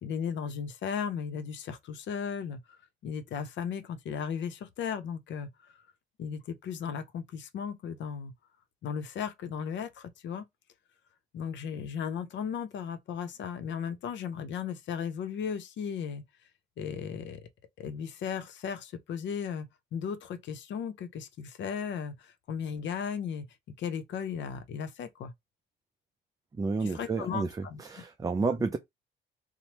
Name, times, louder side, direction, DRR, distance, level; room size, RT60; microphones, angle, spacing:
voice 1, 0.0-2.6 3.0-5.5 6.2-8.3 8.8-10.4 11.3-16.2 16.8-17.4 17.8-25.3 26.8-27.8, left 7 dB, 65° left, 0.6 m, -36 dB
voice 2, 26.5-28.8, right 4 dB, 20° right, 0.3 m, -31 dB
3.1 x 2.0 x 2.9 m
cardioid pair, 90°, 20 cm